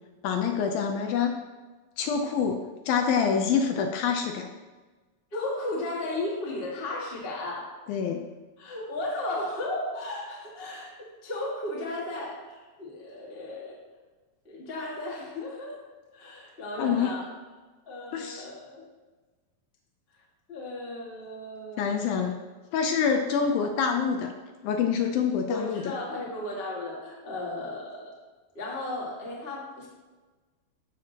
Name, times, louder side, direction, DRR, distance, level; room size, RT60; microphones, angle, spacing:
voice 1, 0.2-1.4 2.0-4.5 7.9-8.2 16.8-17.2 18.1-18.5 21.8-22.4 22.7-24.3 24.6-25.9, left 6 dB, 80° left, 4 dB, 2.2 m, -26 dB
voice 2, 5.3-7.7 8.6-13.8 14.4-15.8 16.1-17.2 17.9-18.8 20.5-22.1 25.5-28.1 28.5-29.9, left 2 dB, 60° left, -4 dB, 0.6 m, -35 dB
14.0 x 6.0 x 2.9 m, 1.3 s
omnidirectional pair, 4.6 m